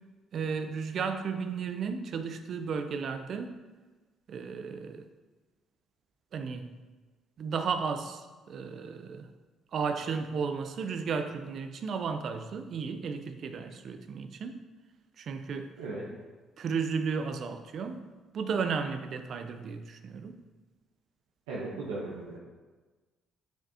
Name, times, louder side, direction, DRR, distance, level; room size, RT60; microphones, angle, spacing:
voice 1, 0.3-3.5 4.3-5.1 6.3-6.7 7.4-9.3 9.7-14.6 15.2-15.7 16.6-18.1 18.3-20.3, right 5 dB, 60° right, 8 dB, 0.6 m, -34 dB
voice 2, 15.8-16.1 21.5-22.4, right 2 dB, 85° right, -5 dB, 0.9 m, -37 dB
7.2 x 5.7 x 2.8 m, 1.3 s
hypercardioid pair, 55°, 0 cm